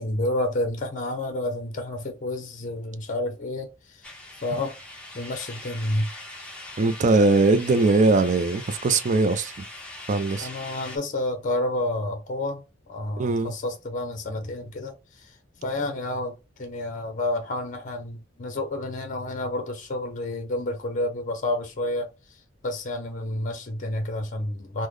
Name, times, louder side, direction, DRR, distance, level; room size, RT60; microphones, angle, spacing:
voice 1, 0.0-4.0 4.4-4.8 5.1-6.1 10.4-14.9 15.6-22.1 22.6-24.9, left 1 dB, 40° left, 0.6 m, -29 dB
sound 1, 4.0-11.0, left 2 dB, 5° left, 0.8 m, -41 dB
voice 2, 6.8-9.6 10.1-10.5 13.2-13.5, right 3 dB, 40° right, 0.4 m, -21 dB
3.7 x 2.1 x 3.1 m
head